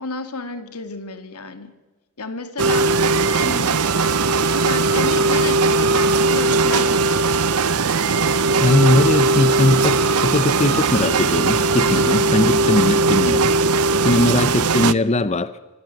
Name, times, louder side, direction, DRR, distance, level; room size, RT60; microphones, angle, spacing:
voice 1, 0.0-1.7 2.2-2.9 3.3-3.8 4.5-7.3, left 3 dB, 85° left, 9 dB, 2.6 m, -31 dB
sound 1, 2.6-12.2, right 5 dB, 65° right, 5.4 m, -32 dB
sound 2, 2.6-14.9, right 3 dB, 85° right, 0.8 m, -18 dB
voice 2, 8.6-13.6 14.0-15.6, left 2 dB, 30° left, 14 dB, 0.7 m, -19 dB
25.0 x 23.5 x 7.9 m, 1.2 s
head